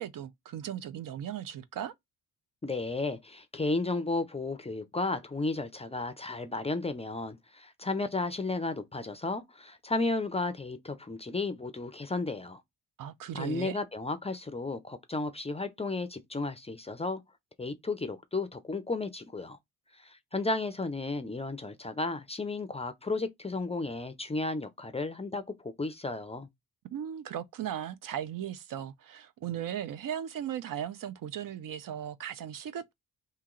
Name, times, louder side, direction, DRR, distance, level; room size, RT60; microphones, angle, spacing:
voice 1, 0.0-1.9 13.0-13.8 26.9-32.9, right 10 dB, 60° right, 0.6 m, -37 dB
voice 2, 2.6-12.6 13.3-17.2 17.6-19.6 20.0-26.5, left 3 dB, 15° left, 0.4 m, -33 dB
2.9 x 2.8 x 3.7 m
cardioid pair, 125°, 37 cm